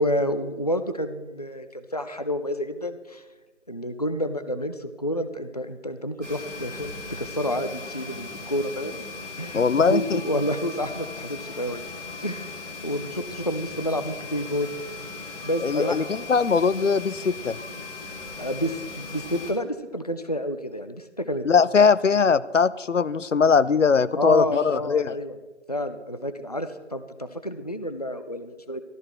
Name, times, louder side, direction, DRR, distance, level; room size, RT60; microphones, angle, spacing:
voice 1, 0.0-3.2 3.7-9.0 9.4-11.8 12.2-12.5 12.8-15.2 15.4-16.0 18.4-21.4 24.2-25.4 25.7-28.8, equal, 35° left, 10 dB, 0.4 m, -29 dB
sound 1, 6.2-19.5, left 3 dB, ahead, 1.1 m, -38 dB
voice 2, 9.5-10.2 15.6-17.6 21.5-25.1, left 5 dB, 80° left, 17 dB, 0.6 m, -21 dB
13.5 x 12.5 x 4.4 m, 1.2 s
figure-of-eight pair, 160°, 36 cm